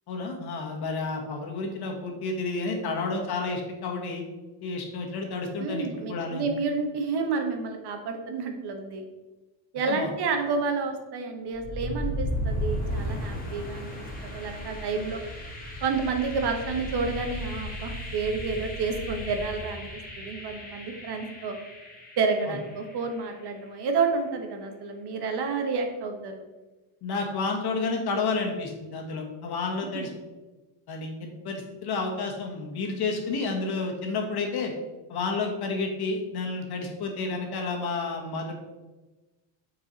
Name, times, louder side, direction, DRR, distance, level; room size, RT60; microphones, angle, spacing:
voice 1, 0.1-4.2 4.6-6.5 9.9-10.1 22.5-22.6 27.0-30.1 30.9-34.7 35.1-38.5, left 3 dB, 50° left, 1 dB, 1.8 m, -30 dB
voice 2, 5.6-9.0 9.7-13.9 14.2-15.2 15.8-19.9 20.2-21.5 22.2-26.5 29.9-30.1, right 4 dB, 50° right, 4 dB, 1.4 m, -30 dB
sound 1, 11.5-23.4, equal, 15° left, 2.0 m, -35 dB
8.9 x 4.8 x 4.2 m, 1.1 s
cardioid pair, 135°, 50 cm